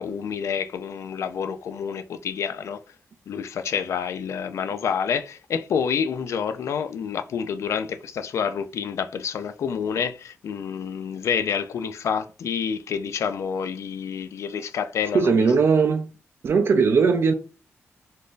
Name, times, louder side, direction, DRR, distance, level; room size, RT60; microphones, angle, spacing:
voice 1, 0.0-2.8 3.3-15.5, left 7 dB, 75° left, 0.3 m, -28 dB
voice 2, 15.1-16.1 16.4-17.3, right 5 dB, 55° right, 0.4 m, -19 dB
3.6 x 2.6 x 2.4 m
wide cardioid pair, 130°, 5 cm